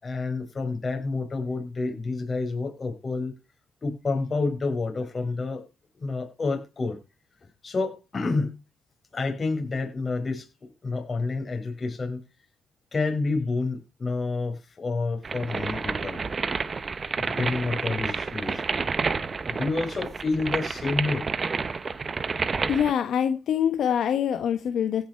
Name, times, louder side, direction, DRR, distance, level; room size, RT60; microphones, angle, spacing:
voice 1, 0.0-3.3 3.8-5.6 5.9-7.0 7.6-8.5 9.1-12.2 12.9-16.2 17.2-18.6 19.5-21.2, left 3 dB, 35° left, 5.1 m, -29 dB
sound 1, 15.2-22.9, right 4 dB, 35° right, 0.9 m, -29 dB
voice 2, 22.7-25.0, left 8 dB, 65° left, 1.3 m, -24 dB
16.5 x 6.1 x 4.6 m
cardioid pair, 90°, 0 cm